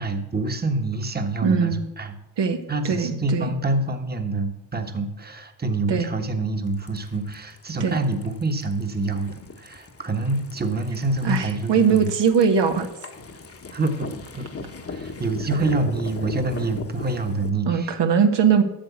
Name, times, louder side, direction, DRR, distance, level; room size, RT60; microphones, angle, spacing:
voice 1, 0.0-2.1 2.7-12.1 13.7-14.5 14.9-17.9, right 2 dB, 20° right, 6 dB, 1.2 m, -26 dB
voice 2, 1.4-1.8 2.4-2.6 2.8-3.5 5.9-6.1 7.8-8.0 11.2-12.9 17.7-18.6, right 6 dB, 75° right, 6 dB, 1.2 m, -20 dB
sound 1, 6.7-17.5, left 4 dB, 35° left, 1.1 m, -38 dB
8.8 x 6.5 x 8.1 m, 0.97 s
cardioid pair, 80°, 43 cm